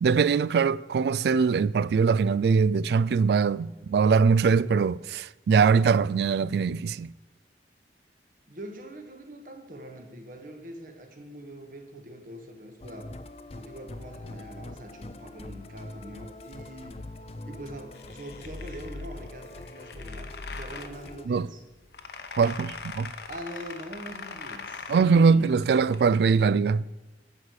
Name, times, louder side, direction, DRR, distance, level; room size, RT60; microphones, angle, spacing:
voice 1, 0.0-7.1 21.3-21.5 22.4-23.1 24.9-26.8, right 5 dB, 70° right, 0.3 m, -22 dB
voice 2, 8.5-13.1 13.5-17.0 17.4-21.6 23.3-25.5, right 1 dB, 50° right, 1.4 m, -43 dB
Musical instrument, 12.8-21.3, left 2 dB, 35° left, 0.5 m, -42 dB
sound 1, 17.9-26.4, left 5 dB, 70° left, 0.8 m, -43 dB
12.0 x 4.8 x 8.2 m
head